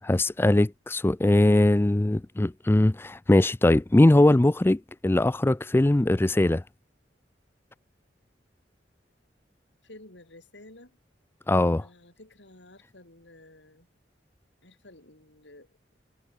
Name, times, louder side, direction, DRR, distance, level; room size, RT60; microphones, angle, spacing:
voice 1, 0.0-6.6 11.5-11.9, left 1 dB, 15° left, 0.4 m, -21 dB
voice 2, 9.8-11.0 11.8-13.9 14.6-15.8, left 1 dB, 85° left, 5.0 m, -52 dB
head